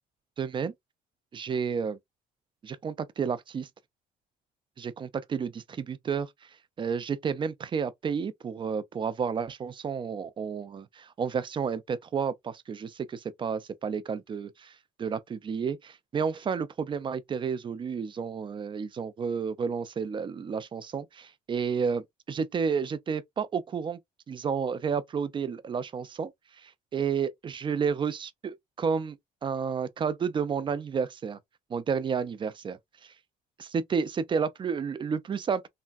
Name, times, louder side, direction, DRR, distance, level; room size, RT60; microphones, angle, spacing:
voice 1, 0.4-0.7 1.3-2.0 2.6-3.7 4.8-6.5 6.8-24.0 24.3-26.3 26.6-29.2 29.4-31.4 31.7-33.1 33.6-35.7, right 6 dB, 30° right, 0.4 m, -31 dB
3.3 x 2.1 x 2.4 m
cardioid pair, 110°, 17 cm